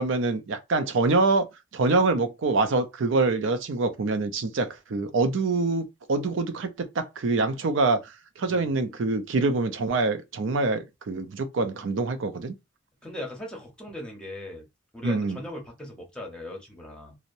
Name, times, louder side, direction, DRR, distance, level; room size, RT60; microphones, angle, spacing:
voice 1, 0.0-1.5 1.7-12.5 15.0-15.4, right 3 dB, 80° right, 0.5 m, -25 dB
voice 2, 13.0-14.7 14.9-17.2, left 1 dB, 5° left, 0.8 m, -39 dB
2.8 x 2.0 x 2.5 m
head